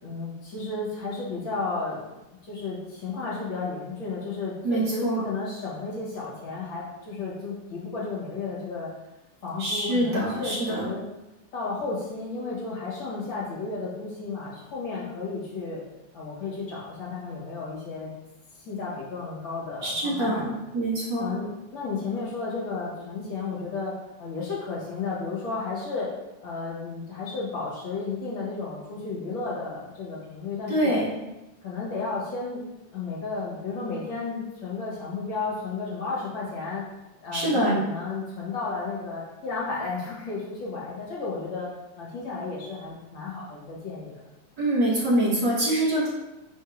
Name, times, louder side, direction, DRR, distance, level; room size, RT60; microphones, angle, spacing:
voice 1, 0.0-2.0 2.4-8.9 9.4-11.0 11.5-15.8 16.1-18.1 18.5-20.5 21.2-26.2 26.4-31.0 31.6-32.6 32.9-36.9 37.2-41.7 42.0-44.1, left 4 dB, 65° left, -6 dB, 2.0 m, -33 dB
voice 2, 4.6-5.2 9.6-10.9 19.8-21.3 30.7-31.1 37.3-37.8 44.6-46.1, right 1 dB, 60° right, -5 dB, 1.5 m, -25 dB
4.4 x 2.7 x 4.5 m, 0.98 s
omnidirectional pair, 2.4 m